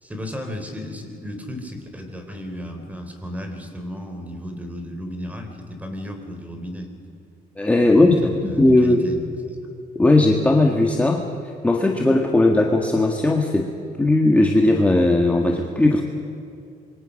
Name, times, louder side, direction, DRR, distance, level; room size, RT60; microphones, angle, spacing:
voice 1, 0.0-6.9 7.9-9.6, left 1 dB, 10° right, 5 dB, 3.6 m, -34 dB
voice 2, 7.6-9.0 9.9-11.2 11.6-13.7 14.0-16.0, left 2 dB, 10° left, 1 dB, 1.7 m, -17 dB
27.0 x 23.5 x 6.4 m, 2.6 s
cardioid pair, 140°, 15 cm